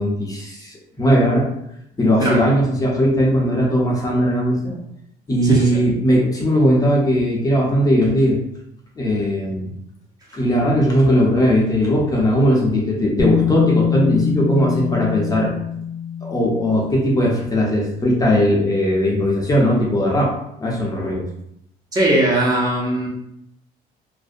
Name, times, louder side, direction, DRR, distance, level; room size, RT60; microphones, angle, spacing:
voice 1, 0.0-1.5 2.0-4.7 5.3-8.4 9.0-9.7 10.3-15.5 16.2-20.3 20.6-21.2, equal, 20° left, -3 dB, 0.6 m, -18 dB
voice 2, 5.4-5.8 21.9-23.1, right 1 dB, 20° right, -3 dB, 0.7 m, -19 dB
Bass guitar, 13.2-17.1 18.3-18.4, left 7 dB, 65° left, 0.6 m, -23 dB
2.4 x 2.1 x 2.6 m, 0.76 s
cardioid pair, 110°, 17 cm